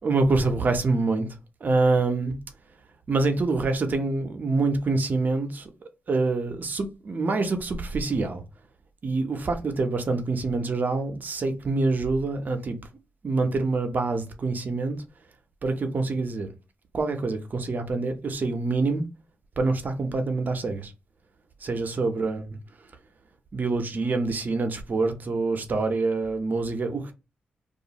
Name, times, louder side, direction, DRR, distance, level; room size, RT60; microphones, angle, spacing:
voice 1, 0.0-1.3 1.6-2.4 3.1-5.7 6.1-8.4 9.0-12.8 13.2-15.0 15.6-16.5 16.9-19.0 19.6-20.9 21.6-22.6 23.5-27.1, right 3 dB, 50° right, 0.7 m, -26 dB
2.5 x 2.4 x 2.9 m
cardioid pair, 60°, 4 cm